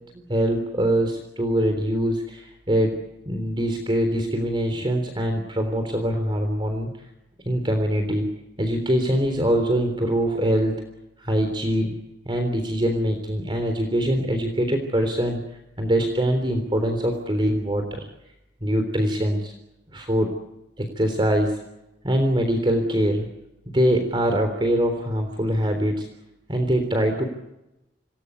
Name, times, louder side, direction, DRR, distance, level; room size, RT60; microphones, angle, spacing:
voice 1, 0.1-3.0 3.3-6.9 7.5-8.3 8.6-10.7 11.2-12.0 12.3-15.4 15.8-18.1 18.6-19.5 19.9-20.3 20.8-21.6 22.0-23.3 23.7-26.1 26.5-27.2, equal, 30° right, 6 dB, 3.6 m, -23 dB
27.0 x 20.0 x 8.3 m, 0.91 s
head